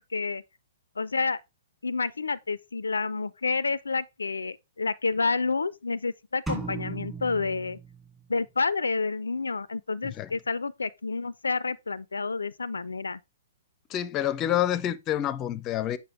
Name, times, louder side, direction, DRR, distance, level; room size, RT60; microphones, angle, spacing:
voice 1, 0.1-0.4 1.0-1.4 1.8-7.8 8.3-13.2, left 4 dB, 80° left, 0.4 m, -29 dB
sound 1, 6.5-8.4, right 3 dB, 10° right, 2.9 m, -37 dB
voice 2, 13.9-16.0, left 11 dB, 30° left, 0.6 m, -28 dB
7.7 x 5.8 x 3.4 m
figure-of-eight pair, 115°, 0 cm